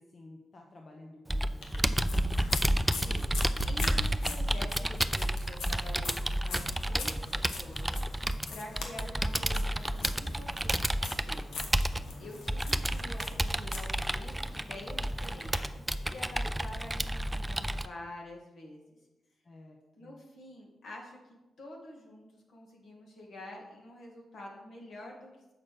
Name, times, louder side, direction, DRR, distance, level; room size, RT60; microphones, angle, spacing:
voice 1, 0.0-2.3 19.4-20.2, left 2 dB, 45° left, 1 dB, 0.9 m, -53 dB
Computer keyboard, 1.3-17.9, right 1 dB, 10° right, 0.4 m, -31 dB
sound 1, 1.6-15.6, left 3 dB, 90° left, 1.2 m, -43 dB
voice 2, 2.9-3.3 3.6-7.9 8.5-11.6 12.2-19.0 19.9-25.3, left 1 dB, 70° left, 0 dB, 2.2 m, -47 dB
7.5 x 6.1 x 4.9 m, 1.0 s
cardioid pair, 95°, 0 cm